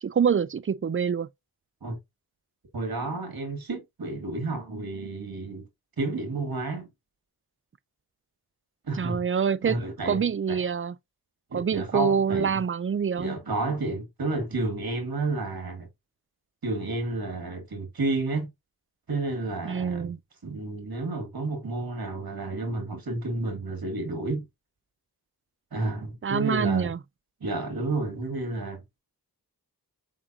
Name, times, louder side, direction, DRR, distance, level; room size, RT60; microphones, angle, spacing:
voice 1, 0.0-1.3 9.0-9.8 10.1-11.0 11.5-13.4 19.7-20.2 26.2-27.0, right 7 dB, 35° right, 0.4 m, -26 dB
voice 2, 2.7-5.7 6.0-6.9 8.8-9.2 9.6-10.6 11.5-12.6 13.2-15.9 16.6-18.5 19.1-20.1 20.4-24.5 25.7-26.9 27.4-28.8, right 2 dB, 65° right, 1.9 m, -31 dB
4.7 x 3.7 x 2.7 m
cardioid pair, 50°, 39 cm